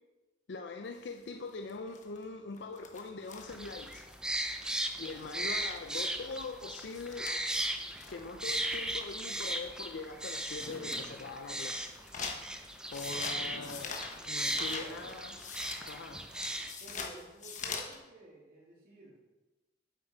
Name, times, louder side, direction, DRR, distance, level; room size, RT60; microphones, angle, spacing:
voice 1, 0.5-4.1 5.0-7.3 8.1-11.9 12.9-15.4 15.9-16.3, left 3 dB, 70° left, 5 dB, 0.5 m, -42 dB
sound 1, 0.9-5.5 5.8-5.9 6.1-6.2 6.5-6.6 6.9-9.2 9.8-9.9 10.4-11.0 11.4-18.0, left 5 dB, 40° left, 1.1 m, -44 dB
sound 2, 3.5-16.7, right 1 dB, 5° right, 0.5 m, -37 dB
voice 2, 5.0-5.5 13.1-13.7 14.5-15.1 16.8-19.2, right 2 dB, 50° right, -5 dB, 3.2 m, -53 dB
Fireworks, 10.6-11.9 13.3-14.9, left 1 dB, 85° left, 1.6 m, -51 dB
8.3 x 7.5 x 4.5 m, 1.1 s
head